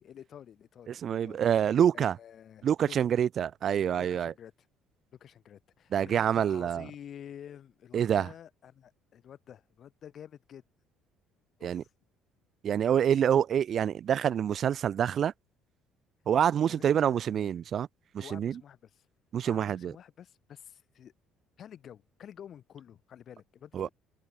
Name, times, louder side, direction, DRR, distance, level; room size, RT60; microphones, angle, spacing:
voice 1, 0.0-1.4 1.9-3.1 3.9-4.5 5.2-10.6 11.6-11.9 16.5-17.5 18.2-19.1 19.4-21.1 21.6-23.9, left 9 dB, 50° left, 3.1 m, -50 dB
voice 2, 0.9-2.2 2.6-4.3 5.9-6.9 7.9-8.3 11.6-11.8 12.6-15.3 16.3-17.9 18.1-18.5 19.3-19.9 23.7-23.9, right 9 dB, 45° right, 0.3 m, -26 dB
cardioid pair, 115°, 0 cm